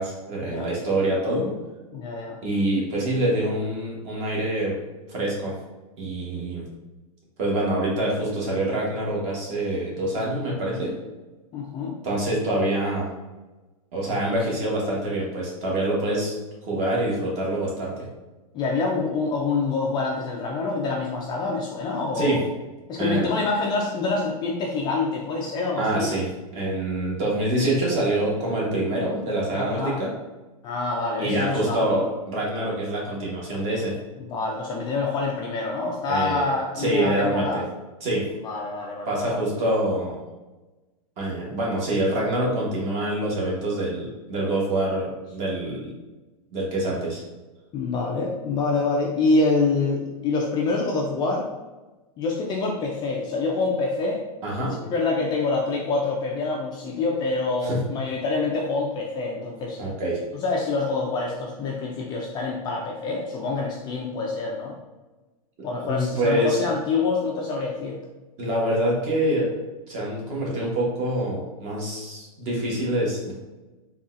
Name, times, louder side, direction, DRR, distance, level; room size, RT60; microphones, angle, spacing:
voice 1, 0.0-1.5 2.4-4.7 5.1-5.5 6.0-6.6 7.4-10.9 12.0-13.1 13.9-16.3 16.6-18.1 22.1-22.4 23.0-23.2 25.8-26.2 26.5-30.1 31.2-33.9 36.1-36.5 36.8-37.6 38.0-38.3 39.1-40.2 41.2-45.9 46.5-47.2 54.4-54.7 57.6-57.8 59.8-60.2 65.8-66.6 68.4-69.5 69.9-73.3, right 1 dB, 35° right, -4 dB, 1.2 m, -25 dB
voice 2, 1.9-2.4 11.5-12.0 18.5-22.4 22.9-26.1 29.5-30.0 30.6-32.0 34.2-37.6 38.4-39.4 47.7-51.5 52.2-54.2 54.9-59.8 60.4-64.8 65.6-68.0, left 3 dB, 25° left, -1 dB, 0.3 m, -26 dB
3.8 x 2.3 x 2.5 m, 1.2 s
hypercardioid pair, 135°, 19 cm